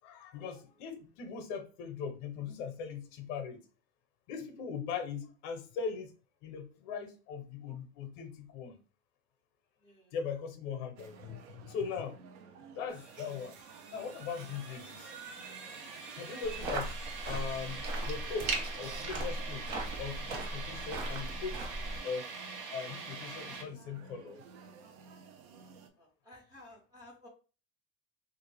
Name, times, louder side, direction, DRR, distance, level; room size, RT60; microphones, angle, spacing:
voice 1, 0.0-3.6 4.3-6.1 6.4-8.8 10.1-12.2 12.8-13.6 13.9-15.1 16.2-17.0 17.2-19.7 20.0-21.6 22.0-22.3 22.7-24.4, left 6 dB, 45° left, 8 dB, 0.6 m, -40 dB
voice 2, 9.8-10.2 26.0-27.3, left 2 dB, 10° right, -2 dB, 0.4 m, -55 dB
sound 1, 10.9-25.9, right 5 dB, 75° right, 0.6 m, -55 dB
sound 2, 12.9-23.6, right 4 dB, 90° right, 1.0 m, -42 dB
sound 3, 16.4-22.0, right 1 dB, 55° right, 1.1 m, -39 dB
3.1 x 2.5 x 3.2 m, 0.36 s
supercardioid pair, 170°, 33 cm